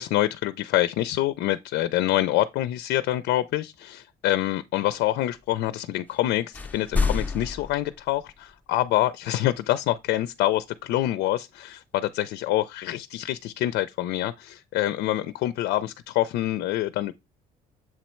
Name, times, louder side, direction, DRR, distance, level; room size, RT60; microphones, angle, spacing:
voice 1, 0.0-17.1, left 14 dB, 80° left, 0.4 m, -26 dB
sound 1, 6.1-6.3 6.5-8.6, left 4 dB, 10° left, 0.5 m, -29 dB
7.5 x 3.1 x 4.3 m
cardioid pair, 110°, 17 cm